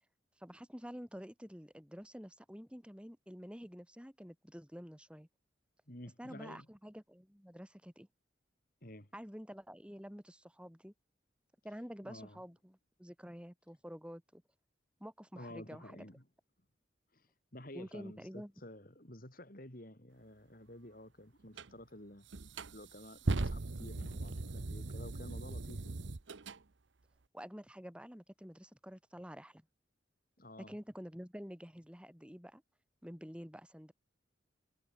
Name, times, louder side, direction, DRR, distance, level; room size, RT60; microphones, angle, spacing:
voice 1, 0.4-5.3 6.2-8.1 9.1-10.9 11.6-14.4 15.0-16.0 17.7-18.5 27.3-29.6 30.7-32.6 33.0-33.9, equal, 5° right, 5.8 m, -49 dB
voice 2, 5.9-6.7 8.8-9.1 12.0-12.4 15.3-16.3 17.1-22.3 22.7-26.1 30.4-30.8, left 1 dB, 50° left, 4.5 m, -51 dB
sound 1, 21.5-21.7 22.3-26.6, right 2 dB, 80° right, 0.9 m, -38 dB
head